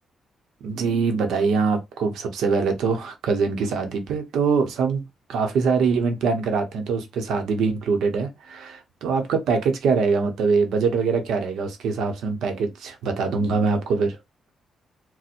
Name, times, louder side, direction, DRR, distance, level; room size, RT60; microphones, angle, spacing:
voice 1, 0.6-5.0 5.3-14.2, right 5 dB, 85° right, 0.8 m, -23 dB
4.2 x 2.1 x 2.5 m
cardioid pair, 140°, 0 cm